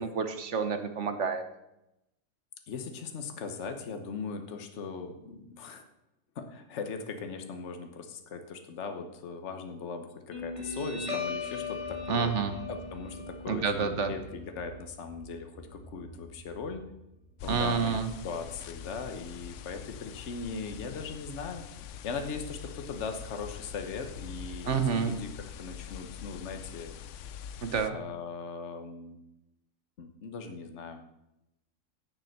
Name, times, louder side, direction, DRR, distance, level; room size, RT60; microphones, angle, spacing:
voice 1, 0.0-1.4 12.1-12.5 13.5-14.1 17.5-18.1 24.6-25.1 27.6-28.0, right 6 dB, 50° right, 8 dB, 1.2 m, -29 dB
voice 2, 2.7-5.8 6.3-12.3 12.7-16.8 17.4-21.6 22.0-25.3 25.6-26.9 27.9-29.2 30.0-31.0, left 5 dB, 50° left, 6 dB, 1.3 m, -39 dB
Guitar, 10.3-17.3, left 3 dB, 20° left, 2.4 m, -39 dB
sound 1, 17.4-27.9, left 9 dB, 70° left, 0.7 m, -44 dB
10.5 x 7.0 x 6.6 m, 0.89 s
omnidirectional pair, 1.7 m